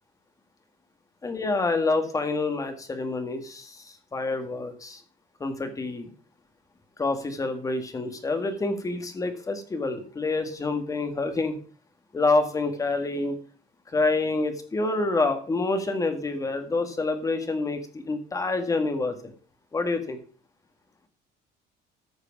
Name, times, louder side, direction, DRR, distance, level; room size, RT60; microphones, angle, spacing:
voice 1, 1.2-3.8 4.1-5.0 5.4-6.1 7.0-11.6 12.1-13.4 13.9-19.3 19.7-20.2, left 3 dB, 20° left, 7 dB, 1.8 m, -27 dB
14.0 x 4.9 x 6.0 m, 0.42 s
cardioid pair, 155°, 19 cm